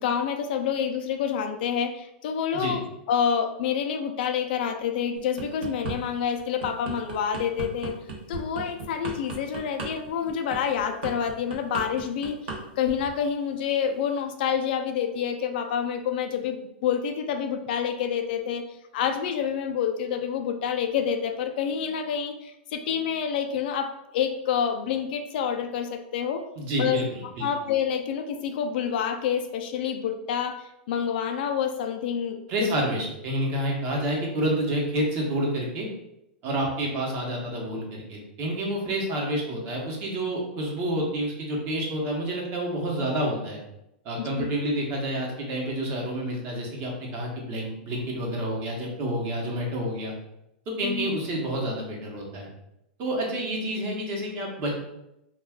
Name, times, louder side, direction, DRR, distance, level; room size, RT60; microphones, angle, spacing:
voice 1, 0.0-2.8 3.1-8.0 8.3-12.4 12.8-18.6 18.9-26.4 26.8-32.7 44.2-44.5 50.8-51.1, left 8 dB, 65° left, 6 dB, 0.3 m, -28 dB
sound 1, 5.2-6.0 6.4-12.6 12.8-13.1, right 4 dB, 75° right, 0.9 m, -35 dB
voice 2, 26.6-27.5 32.5-35.9 36.4-43.6 44.0-50.1 50.8-52.5 53.0-54.7, right 1 dB, 40° right, -1 dB, 0.9 m, -29 dB
2.3 x 2.3 x 3.5 m, 0.86 s
hypercardioid pair, 130°, 6 cm